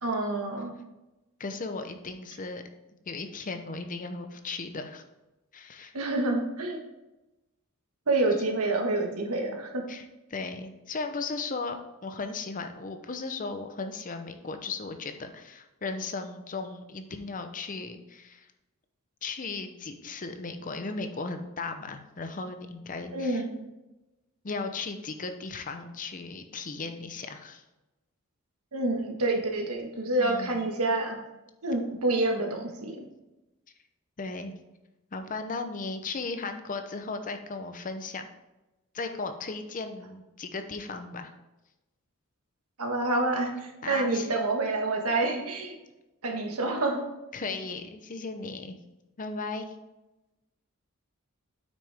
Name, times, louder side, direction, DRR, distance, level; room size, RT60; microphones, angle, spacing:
voice 1, 0.0-0.7 5.9-6.8 8.1-9.8 23.1-23.5 28.7-31.2 31.6-33.0 42.8-45.7 46.2-47.0, right 2 dB, 80° right, 2 dB, 1.6 m, -28 dB
voice 2, 1.4-2.6 3.1-5.0 5.5-5.9 9.9-10.0 10.3-18.5 19.2-23.4 24.4-27.6 30.2-30.6 34.2-34.5 35.1-38.2 38.9-41.3 43.8-44.3 47.3-48.7 49.2-49.7, left 3 dB, 35° left, 7 dB, 0.7 m, -36 dB
8.4 x 6.3 x 3.5 m, 1.0 s
head